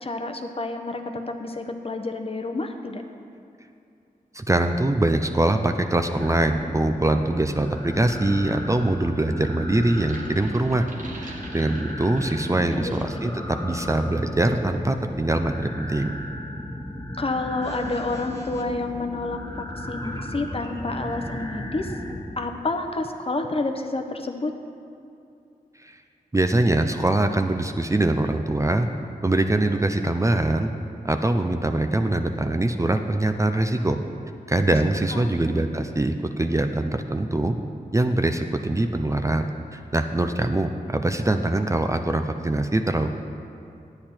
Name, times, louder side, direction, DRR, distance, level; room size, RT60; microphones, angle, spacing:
voice 1, 0.0-3.0 12.5-12.9 17.2-21.9 22.4-24.5 35.1-35.3, left 2 dB, 40° left, 6 dB, 0.8 m, -29 dB
voice 2, 4.3-10.9 11.2-16.2 25.8-26.0 26.3-28.9 29.2-30.7 31.0-34.0 34.5-37.6 37.9-43.2, right 2 dB, 20° right, 6 dB, 0.5 m, -23 dB
sound 1, 6.2-22.2, left 1 dB, 20° left, 1.4 m, -35 dB
sound 2, 9.8-13.3 13.7-13.9, right 2 dB, 60° right, 1.2 m, -44 dB
9.7 x 8.6 x 4.4 m, 2.5 s
cardioid pair, 55°, 15 cm